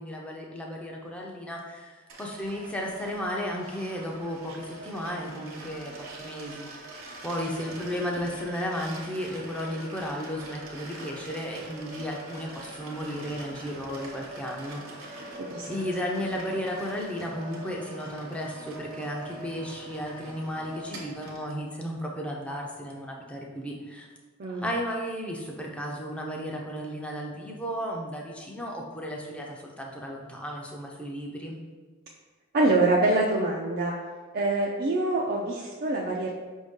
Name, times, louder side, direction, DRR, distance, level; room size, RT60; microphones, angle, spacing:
voice 1, 0.0-6.9 7.2-15.4 15.7-24.1 24.5-31.6, equal, 5° left, -1 dB, 0.5 m, -34 dB
sound 1, 2.1-21.6, right 1 dB, 70° right, 1.0 m, -43 dB
voice 2, 32.5-33.9 34.3-36.3, right 2 dB, 45° right, -3 dB, 0.4 m, -25 dB
5.3 x 2.7 x 3.6 m, 1.4 s
head